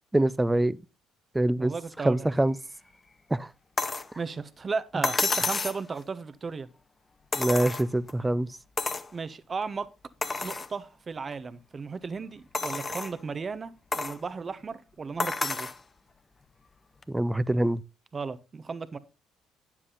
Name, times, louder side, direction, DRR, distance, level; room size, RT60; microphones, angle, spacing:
voice 1, 0.1-0.8 1.3-1.7 2.0-2.6 3.3-3.5 7.4-8.5 17.1-17.8, right 1 dB, 15° right, 0.5 m, -24 dB
voice 2, 1.6-2.3 4.2-6.7 9.1-9.9 10.4-15.7 18.1-19.0, right 4 dB, 35° right, 1.0 m, -35 dB
sound 1, 3.8-4.1 5.0-5.8 7.3-8.1 8.8-9.1 9.6-9.7 10.2-10.7 11.3-11.4 12.5-13.2 13.9-14.2 15.2-15.8 17.0-17.1, left 3 dB, 25° left, 0.8 m, -30 dB
9.8 x 7.4 x 3.9 m
hypercardioid pair, 60°, 0 cm